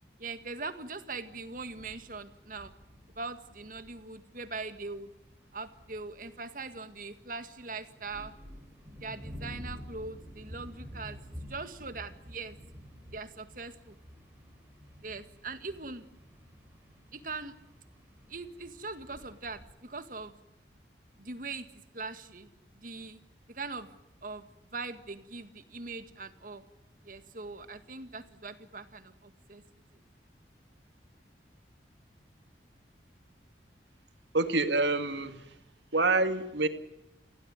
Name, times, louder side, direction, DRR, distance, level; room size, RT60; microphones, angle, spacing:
voice 1, 0.2-2.7 3.2-5.1 5.5-8.3 9.0-12.6 13.1-14.0 15.0-16.0 17.1-17.5 18.3-20.4 21.2-21.7 21.9-22.5 22.8-23.2 23.5-23.9 24.2-24.5 24.7-26.6 27.0-29.6, right 3 dB, 50° right, 1.8 m, -41 dB
sound 1, 1.3-19.7, equal, 10° right, 5.3 m, -50 dB
voice 2, 34.3-35.5 35.9-36.7, right 3 dB, 90° right, 2.3 m, -27 dB
27.0 x 16.5 x 9.7 m
head